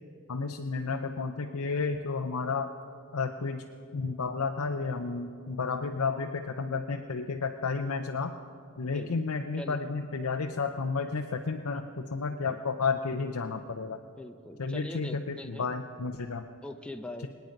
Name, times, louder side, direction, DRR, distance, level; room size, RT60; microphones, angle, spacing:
voice 1, 0.3-2.7 3.1-3.6 3.9-8.3 8.8-14.0 14.6-16.5, left 4 dB, 85° left, 4 dB, 0.7 m, -32 dB
voice 2, 14.0-15.7 16.6-17.3, left 1 dB, 5° left, 6 dB, 0.7 m, -42 dB
26.0 x 9.2 x 5.2 m, 2.3 s
head